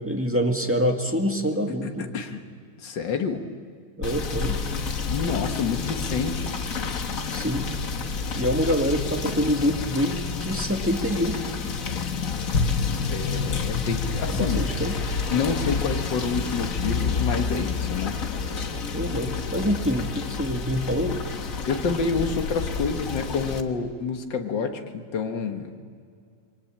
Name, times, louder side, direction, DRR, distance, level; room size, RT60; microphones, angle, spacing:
voice 1, 0.0-2.1 4.0-4.6 7.3-7.6 8.4-11.4 14.3-15.0 18.9-21.2, equal, 5° right, 2 dB, 1.8 m, -26 dB
voice 2, 1.8-2.4 2.8-3.4 5.1-6.6 13.1-14.7 15.3-18.2 21.7-25.8, left 5 dB, 65° left, 4 dB, 2.2 m, -28 dB
Rain / Motor vehicle (road), 4.0-23.6, left 5 dB, 45° left, 1.6 m, -29 dB
27.5 x 23.0 x 8.8 m, 2.2 s
omnidirectional pair, 2.2 m